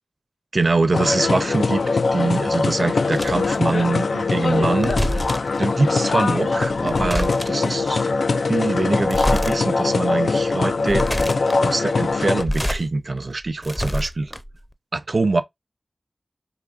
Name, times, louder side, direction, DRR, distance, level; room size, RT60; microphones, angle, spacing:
voice 1, 0.5-5.0 5.6-8.1 8.5-14.3 14.9-15.4, right 3 dB, 60° right, 0.5 m, -24 dB
sound 1, 0.9-12.4, left 4 dB, 90° left, 0.3 m, -22 dB
sound 2, 3.1-3.6 4.6-5.6 6.6-7.7 9.0-9.6 10.0-10.1 10.7-11.6 12.2-12.8 13.2-14.6, equal, 5° left, 0.5 m, -26 dB
4.9 x 3.0 x 2.5 m
wide cardioid pair, 55°, 0 cm